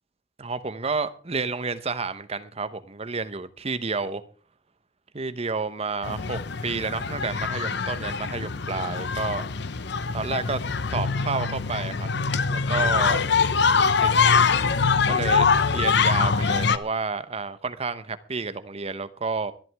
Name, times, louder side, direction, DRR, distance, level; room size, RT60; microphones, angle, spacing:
voice 1, 0.4-4.2 5.1-9.4 10.1-10.6 10.9-12.1 12.5-13.2 14.0-14.1 15.0-19.5, right 4 dB, 35° right, 0.9 m, -30 dB
sound 1, 6.0-16.8, left 5 dB, 65° left, 0.8 m, -23 dB
22.0 x 11.0 x 3.5 m
head